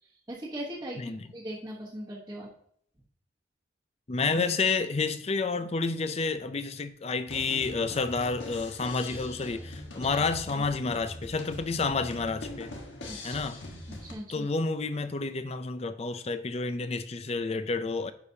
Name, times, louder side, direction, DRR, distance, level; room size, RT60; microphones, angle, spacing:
voice 1, 0.0-2.5 10.0-10.2 10.5-10.7 13.1-13.4 14.0-14.4, right 1 dB, 20° right, 1.1 m, -40 dB
voice 2, 4.1-12.7 13.2-13.6 14.3-18.1, left 4 dB, 35° left, 0.5 m, -30 dB
sound 1, 7.3-14.1, left 1 dB, 85° left, 1.4 m, -42 dB
10.0 x 5.0 x 2.7 m
head